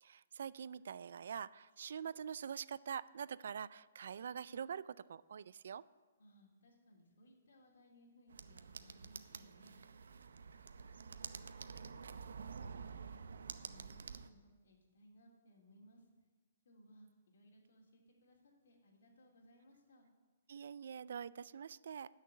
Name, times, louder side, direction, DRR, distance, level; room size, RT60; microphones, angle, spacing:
voice 1, 0.0-5.8 20.5-22.1, right 7 dB, 55° right, 19 dB, 0.4 m, -45 dB
voice 2, 6.2-9.8 10.8-16.1 16.6-20.1, equal, 65° left, -2 dB, 3.3 m, -65 dB
sound 1, 8.3-14.3, right 5 dB, 90° right, 0.7 m, -49 dB
13.0 x 6.6 x 9.6 m, 1.4 s
hypercardioid pair, 175°, 0 cm